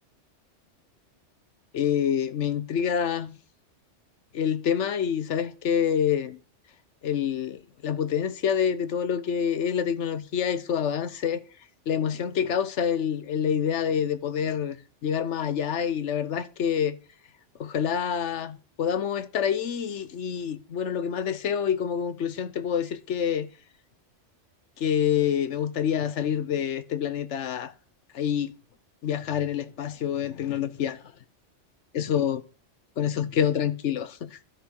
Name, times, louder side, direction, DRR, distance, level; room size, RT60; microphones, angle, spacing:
voice 1, 1.7-3.4 4.3-6.4 7.0-11.4 11.9-14.8 15.0-17.0 17.6-23.5 24.8-27.7 28.1-28.5 29.0-31.0 31.9-32.4 33.0-34.4, left 8 dB, 75° left, 1.1 m, -27 dB
11.5 x 6.1 x 6.3 m
omnidirectional pair, 1.2 m